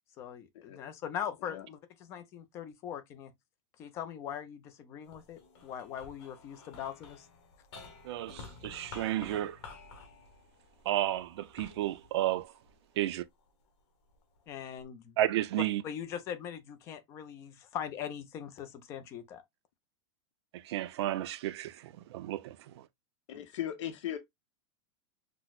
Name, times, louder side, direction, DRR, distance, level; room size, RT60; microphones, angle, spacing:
voice 1, 0.2-3.3 3.8-7.3 14.5-15.2 15.8-19.4 23.3-23.5, left 9 dB, 20° left, 0.3 m, -41 dB
sound 1, 5.0-13.5 14.1-14.8, left 4 dB, 60° left, 1.3 m, -52 dB
voice 2, 8.0-9.6 10.9-12.5 13.0-13.2 15.2-15.8 20.5-22.8, right 13 dB, 65° right, 0.4 m, -32 dB
voice 3, 23.3-24.2, left 11 dB, 85° left, 0.7 m, -38 dB
5.8 x 2.0 x 2.2 m
supercardioid pair, 180°, 15 cm